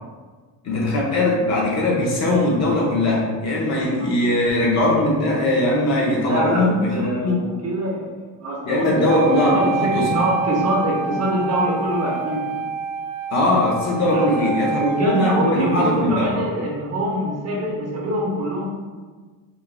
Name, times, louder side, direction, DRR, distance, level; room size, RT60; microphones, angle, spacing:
voice 1, 0.6-7.4 8.6-10.1 13.3-16.3, left 1 dB, 40° left, -3 dB, 0.4 m, -20 dB
voice 2, 6.3-8.1 8.4-8.9 9.4-12.5 14.1-14.5 14.8-18.7, right 1 dB, 40° right, -3 dB, 0.5 m, -24 dB
Wind instrument woodwind instrument, 9.1-16.0, right 5 dB, 90° right, 0.5 m, -27 dB
2.3 x 2.0 x 3.1 m, 1.4 s
cardioid pair, 160°, 44 cm